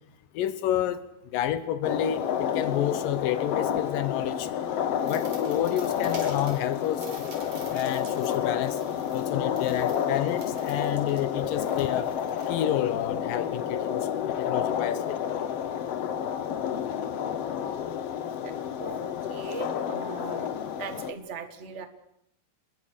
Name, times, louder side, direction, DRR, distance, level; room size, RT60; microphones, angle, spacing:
voice 1, 0.4-1.0 1.3-4.5 5.1-7.2 7.7-8.8 9.1-12.1 12.5-15.2 20.0-20.1, left 11 dB, 85° left, 13 dB, 2.7 m, -29 dB
sound 1, 1.8-21.1, left 9 dB, 60° left, 2.0 m, -30 dB
sound 2, 4.9-13.0, right 3 dB, 55° right, 5.3 m, -48 dB
voice 2, 18.4-19.0 19.3-20.5 20.8-21.9, right 6 dB, 30° right, 8 dB, 1.4 m, -39 dB
28.0 x 21.0 x 6.7 m, 0.78 s
omnidirectional pair, 3.8 m